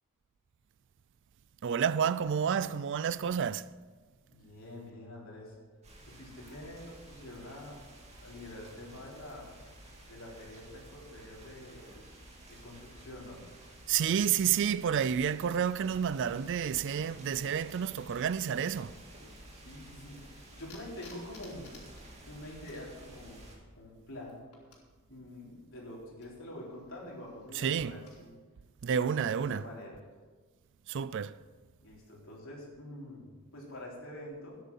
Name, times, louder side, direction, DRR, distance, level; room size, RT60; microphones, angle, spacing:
voice 1, 1.6-3.7 13.9-19.0 27.5-28.0 28.8-29.6 30.9-31.4, right 8 dB, 55° right, 0.4 m, -30 dB
voice 2, 4.3-5.6 6.0-7.8 8.2-9.5 10.1-11.8 12.5-13.5 19.5-21.7 22.3-23.4 23.7-24.4 25.1-28.3 28.9-30.0 31.8-34.6, left 1 dB, 60° left, 3.9 m, -46 dB
sound 1, 5.8-23.5, right 1 dB, 30° right, 2.4 m, -52 dB
Intercom static and buttons, 20.6-28.2, left 3 dB, 90° left, 3.6 m, -59 dB
13.0 x 9.9 x 5.6 m
head